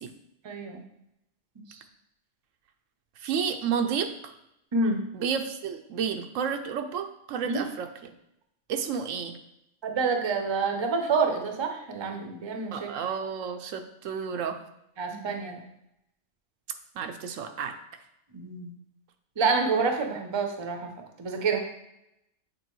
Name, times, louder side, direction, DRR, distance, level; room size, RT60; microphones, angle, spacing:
voice 1, 0.4-0.8 4.7-5.0 7.4-7.6 9.8-12.9 15.0-15.6 18.3-18.7 19.4-20.9 21.2-21.6, right 4 dB, 30° right, 4 dB, 0.5 m, -27 dB
voice 2, 3.2-4.3 5.1-8.1 8.7-9.3 12.7-14.6 15.1-15.3 17.0-17.8, right 7 dB, 90° right, 7 dB, 1.0 m, -31 dB
8.0 x 3.8 x 3.0 m, 0.81 s
omnidirectional pair, 1.3 m